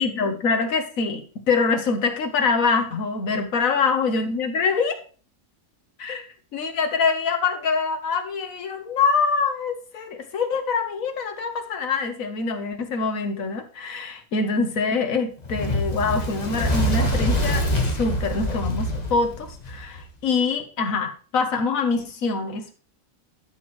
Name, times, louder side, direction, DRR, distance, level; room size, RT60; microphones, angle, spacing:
voice 1, 0.0-5.0 6.0-6.3 6.5-17.7 17.9-22.8, left 4 dB, 90° left, 7 dB, 1.6 m, -24 dB
Fire, 15.4-20.0, equal, 30° left, 1.5 m, -25 dB
13.5 x 6.2 x 3.1 m, 0.40 s
omnidirectional pair, 1.4 m